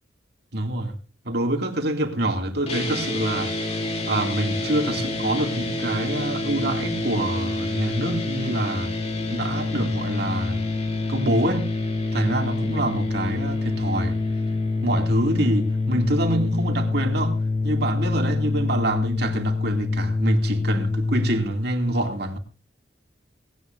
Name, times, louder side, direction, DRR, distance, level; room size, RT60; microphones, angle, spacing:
voice 1, 0.5-1.0 1.2-3.7 4.1-8.9 9.3-10.6 11.1-11.7 12.1-14.2 14.8-17.4 17.6-22.4, right 1 dB, 60° right, 2.5 m, -26 dB
sound 1, 2.7-21.4, left 3 dB, 35° left, 3.0 m, -26 dB
19.0 x 17.5 x 2.6 m
head